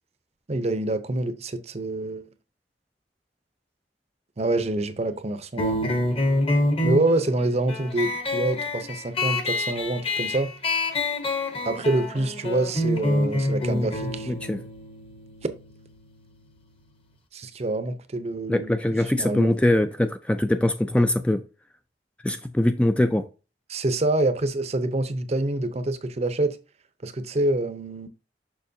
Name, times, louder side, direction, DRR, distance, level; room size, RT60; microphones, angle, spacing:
voice 1, 0.5-2.2 4.4-5.8 6.8-10.5 11.6-14.3 17.3-18.8 19.0-19.6 23.7-26.6 27.0-28.1, right 2 dB, 35° right, 0.6 m, -26 dB
sound 1, 5.6-16.7, left 1 dB, 30° left, 1.0 m, -27 dB
voice 2, 14.3-14.6 18.5-21.4 22.2-23.2, left 1 dB, 5° left, 0.3 m, -22 dB
6.8 x 5.8 x 2.7 m
head